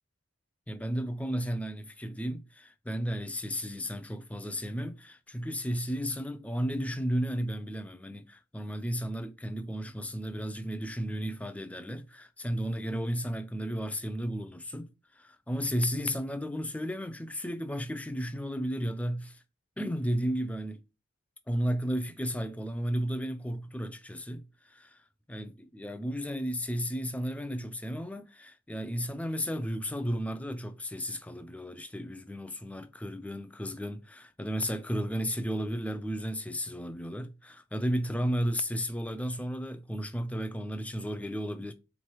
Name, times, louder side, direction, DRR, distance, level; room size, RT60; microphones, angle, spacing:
voice 1, 0.7-19.4 19.8-20.8 21.5-25.0 25.3-41.7, equal, 5° left, 0.3 m, -33 dB
3.7 x 3.1 x 4.4 m
head